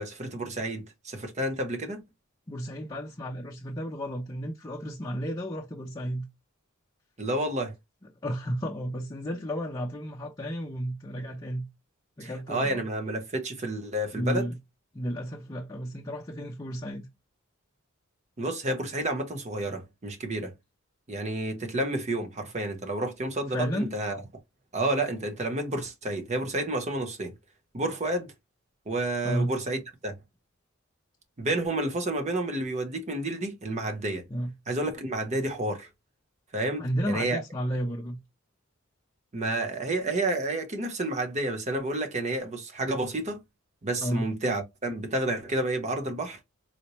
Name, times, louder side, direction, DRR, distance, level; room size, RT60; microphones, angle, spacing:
voice 1, 0.0-2.0 7.2-7.7 12.2-14.5 18.4-20.5 21.1-24.2 24.7-27.3 27.7-28.3 28.9-30.1 31.4-34.2 34.7-35.9 36.5-37.4 39.3-43.4 43.8-46.4, right 1 dB, 35° right, 0.8 m, -30 dB
voice 2, 2.5-6.2 8.2-11.7 12.2-12.8 14.1-14.6 14.9-17.1 23.5-23.9 29.2-29.5 34.3-34.5 36.8-38.2 44.0-44.3, equal, 20° left, 0.6 m, -32 dB
4.3 x 2.1 x 2.9 m
head